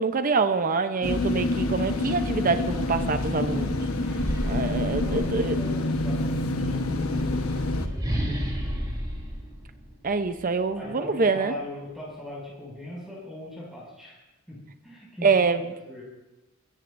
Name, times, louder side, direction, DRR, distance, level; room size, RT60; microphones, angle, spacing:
voice 1, 0.0-3.8 4.4-5.6 10.0-11.5 15.2-15.7, right 4 dB, 40° right, 8 dB, 0.7 m, -25 dB
sound 1, 1.0-7.9, left 2 dB, 85° left, 1.2 m, -27 dB
sound 2, 2.2-5.8 6.8-10.4, equal, 20° right, 3.3 m, -33 dB
voice 2, 5.0-9.0 10.7-14.2 14.5-14.6 14.8-15.3 15.8-16.0, left 1 dB, ahead, -5 dB, 6.2 m, -40 dB
24.5 x 14.5 x 2.6 m, 1.0 s
head